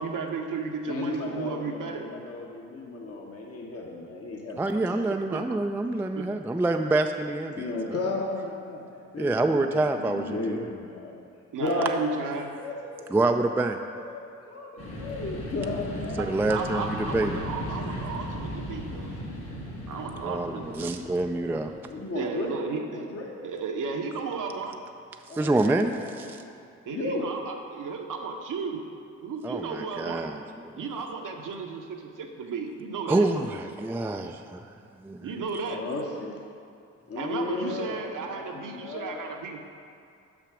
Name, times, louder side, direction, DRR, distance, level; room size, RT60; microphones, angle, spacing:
voice 1, 0.0-2.1 5.3-5.6 6.1-6.3 11.5-12.5 16.2-19.1 19.9-20.9 22.1-23.1 23.4-24.8 26.9-28.8 29.2-30.3 30.8-33.3 35.2-35.8 37.2-39.6, right 5 dB, 60° right, 3 dB, 0.9 m, -34 dB
voice 2, 0.9-5.2 7.6-8.9 9.1-11.2 11.6-16.3 21.9-23.4 25.3-26.5 26.9-27.3 35.7-36.3 37.1-39.3, left 2 dB, 40° left, -1 dB, 1.0 m, -34 dB
voice 3, 4.6-7.7 9.2-10.6 13.1-13.8 16.2-16.8 17.1-17.3 20.2-21.7 25.3-26.4 29.4-30.4 30.7-30.8 33.1-34.6 35.0-35.2 35.5-35.6, right 2 dB, 5° right, 5 dB, 0.3 m, -26 dB
sound 1, 14.8-22.2, equal, 85° left, 1.7 m, -37 dB
6.1 x 5.7 x 4.9 m, 2.5 s
hypercardioid pair, 50°, 36 cm